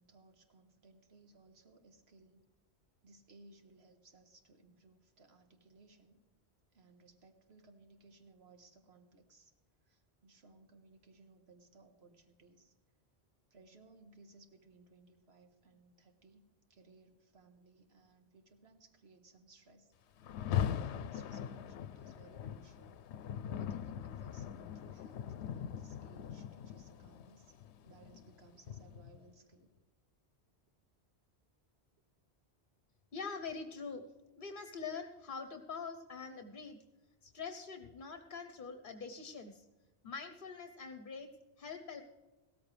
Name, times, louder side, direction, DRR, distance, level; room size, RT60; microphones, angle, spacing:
voice 1, 0.0-2.4 3.0-6.2 6.7-9.5 9.8-12.7 13.5-19.9 20.5-23.0 23.4-29.7, right 3 dB, 75° right, 5 dB, 1.7 m, -62 dB
Rain, 20.2-29.3, left 9 dB, 90° left, 0.8 m, -41 dB
voice 2, 33.1-34.1 34.4-36.8 37.2-39.6 40.0-41.3 41.6-42.0, left 5 dB, 55° left, 7 dB, 1.0 m, -44 dB
16.5 x 14.0 x 3.3 m, 1.2 s
omnidirectional pair, 1.1 m